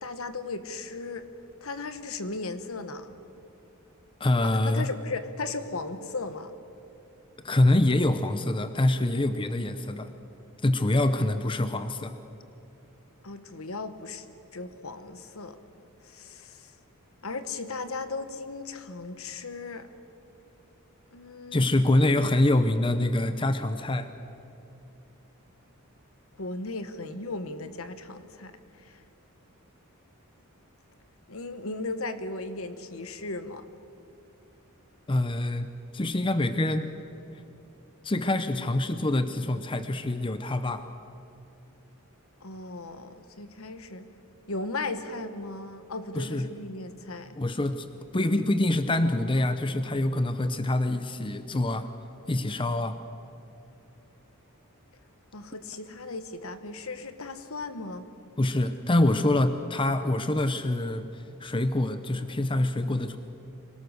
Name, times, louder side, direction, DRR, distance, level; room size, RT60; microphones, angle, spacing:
voice 1, 0.0-1.3 1.6-3.2 4.4-6.5 13.2-14.2 14.5-15.6 16.0-16.7 17.2-19.9 21.1-21.9 26.4-29.0 31.3-33.6 42.4-44.1 44.5-47.3 55.3-58.1, left 3 dB, 65° left, 10 dB, 1.3 m, -36 dB
voice 2, 4.2-4.9 7.4-10.1 10.6-12.1 21.5-24.1 35.1-36.9 38.0-40.9 46.1-46.5 47.4-47.9 48.1-51.9 52.3-53.0 58.4-63.2, left 1 dB, 25° left, 10 dB, 0.7 m, -25 dB
25.5 x 18.5 x 6.5 m, 2.9 s
head